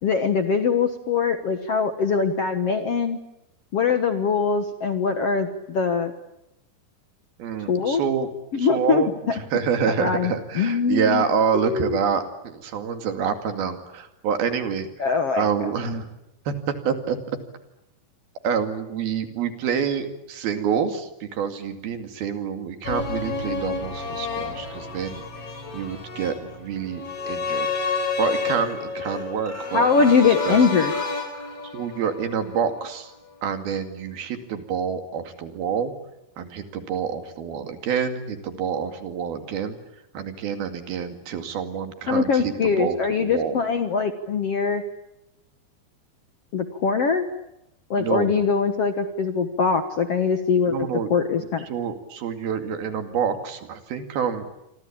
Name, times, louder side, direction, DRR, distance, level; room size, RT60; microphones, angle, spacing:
voice 1, 0.0-3.2 3.7-6.1 7.7-8.0 8.5-9.0 10.0-11.2 11.6-12.0 15.0-15.4 29.7-30.9 42.1-44.8 46.5-47.2 47.9-50.7 51.1-51.6, left 5 dB, 55° left, 8 dB, 1.7 m, -22 dB
voice 2, 7.4-8.3 8.6-16.1 16.5-17.2 18.4-27.7 28.2-30.6 31.6-33.1 33.4-35.9 36.4-39.8 40.1-43.6 48.0-48.3 50.6-51.1 51.4-54.5, right 7 dB, 70° right, 7 dB, 4.2 m, -27 dB
sound 1, 22.8-33.0 33.3-33.4, left 4 dB, 40° left, 5.2 m, -30 dB
sound 2, 26.7-27.3 27.6-27.8 28.1-28.3 28.5-31.6 31.9-32.0 32.4-32.5, right 1 dB, 5° left, 7.5 m, -41 dB
27.5 x 24.5 x 8.7 m, 0.87 s
omnidirectional pair, 4.5 m